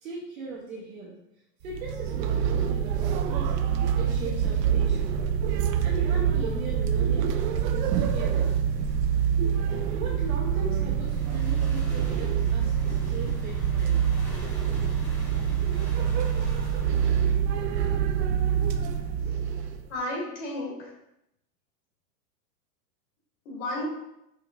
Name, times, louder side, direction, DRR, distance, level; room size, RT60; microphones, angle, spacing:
voice 1, 0.0-1.1 1.6-3.7 3.9-5.2 5.5-7.3 7.6-8.5 9.9-14.1, right 3 dB, 55° right, -4 dB, 0.9 m, -39 dB
sound 1, 1.6-19.9, right 8 dB, 75° right, 0.5 m, -26 dB
sound 2, 10.9-17.4, left 1 dB, 20° left, 0.5 m, -48 dB
voice 2, 19.9-20.9 23.4-23.8, left 1 dB, 45° left, -2 dB, 1.4 m, -33 dB
5.2 x 3.1 x 2.4 m, 0.84 s
supercardioid pair, 180°, 50 cm